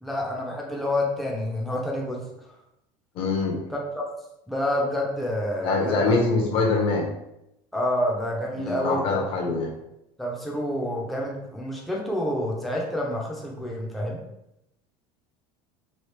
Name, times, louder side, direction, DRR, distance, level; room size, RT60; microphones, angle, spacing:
voice 1, 0.0-2.2 3.7-4.0 4.5-6.2 7.7-9.6 10.2-14.2, left 1 dB, ahead, -3 dB, 0.5 m, -28 dB
voice 2, 3.1-3.6 5.6-7.1 8.6-9.7, left 3 dB, 45° left, -1 dB, 0.8 m, -24 dB
3.1 x 2.4 x 3.2 m, 0.84 s
cardioid pair, 145°, 13 cm